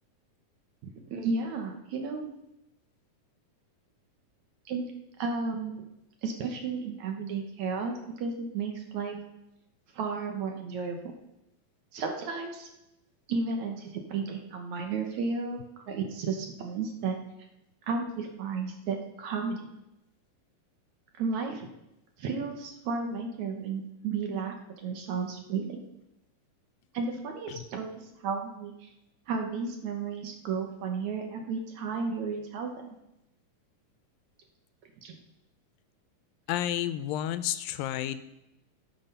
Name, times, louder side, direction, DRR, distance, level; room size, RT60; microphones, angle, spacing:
voice 1, 0.8-2.3 4.7-4.9 5.2-5.7 6.2-9.2 9.9-11.1 11.9-12.7 13.3-17.2 17.9-19.7 21.2-21.7 22.2-25.8 26.9-28.9 29.3-33.0 35.0-35.2, right 4 dB, 65° right, 3 dB, 2.2 m, -33 dB
voice 2, 36.5-38.2, left 12 dB, 85° left, 12 dB, 2.4 m, -31 dB
17.0 x 6.2 x 5.4 m, 0.89 s
omnidirectional pair, 4.0 m